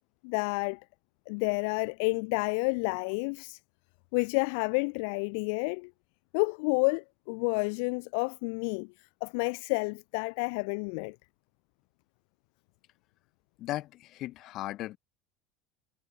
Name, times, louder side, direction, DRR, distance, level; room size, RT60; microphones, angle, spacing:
voice 1, 0.2-0.8 1.3-3.6 4.1-5.9 6.3-8.9 9.2-11.1, left 35 dB, 70° left, 0.8 m, -30 dB
voice 2, 13.6-15.0, left 16 dB, 55° left, 4.2 m, -37 dB
supercardioid pair, 90°, 0 cm